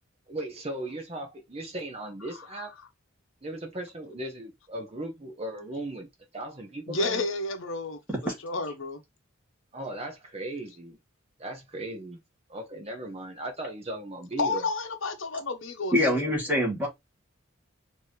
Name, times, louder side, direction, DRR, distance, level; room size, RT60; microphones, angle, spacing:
voice 1, 0.3-2.7 3.4-7.3 9.7-11.0 11.4-12.2 12.5-14.6, right 1 dB, 30° right, 0.8 m, -37 dB
voice 2, 6.9-9.0 14.4-16.3, left 3 dB, 70° left, 0.8 m, -31 dB
voice 3, 15.9-16.9, left 1 dB, 10° right, 1.6 m, -24 dB
4.6 x 2.7 x 3.1 m
head